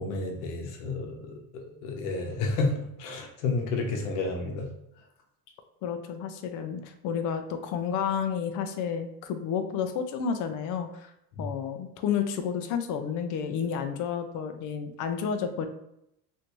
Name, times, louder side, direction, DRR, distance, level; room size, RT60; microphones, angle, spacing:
voice 1, 0.0-4.7 11.3-11.4, left 3 dB, 85° left, 2 dB, 0.9 m, -31 dB
voice 2, 5.8-11.1 11.4-15.7, left 7 dB, 50° left, 7 dB, 0.5 m, -31 dB
3.3 x 2.6 x 3.0 m, 0.79 s
cardioid pair, 150°, 41 cm